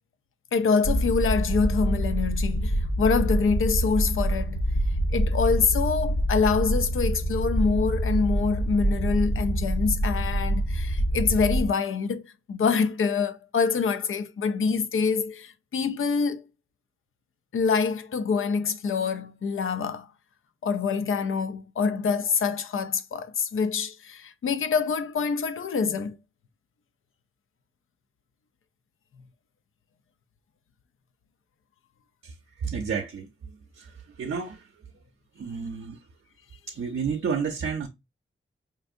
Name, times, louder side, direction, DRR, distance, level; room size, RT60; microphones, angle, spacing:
voice 1, 0.5-4.6 5.1-12.2 12.5-16.4 17.5-20.1 20.6-26.1, left 5 dB, 80° left, 0.5 m, -25 dB
sound 1, 0.8-11.7, right 1 dB, 55° left, 0.9 m, -26 dB
voice 2, 32.6-33.3 33.8-33.9 34.2-34.6 35.4-36.0 36.7-37.9, right 6 dB, 75° right, 0.5 m, -30 dB
5.2 x 2.6 x 2.4 m
wide cardioid pair, 85°, 21 cm